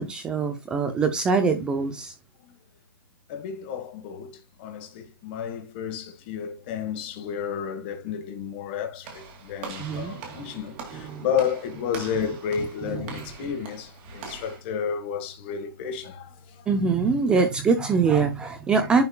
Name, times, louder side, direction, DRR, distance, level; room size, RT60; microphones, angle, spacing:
voice 1, 0.0-2.1 9.8-10.2 10.9-11.2 16.7-19.0, right 5 dB, 5° right, 0.4 m, -23 dB
voice 2, 3.3-16.7, left 7 dB, 30° left, 1.4 m, -32 dB
Walk footsteps / Slam, 9.0-14.6, right 5 dB, 25° right, 2.1 m, -42 dB
10.5 x 4.5 x 2.2 m
hypercardioid pair, 175°, 12 cm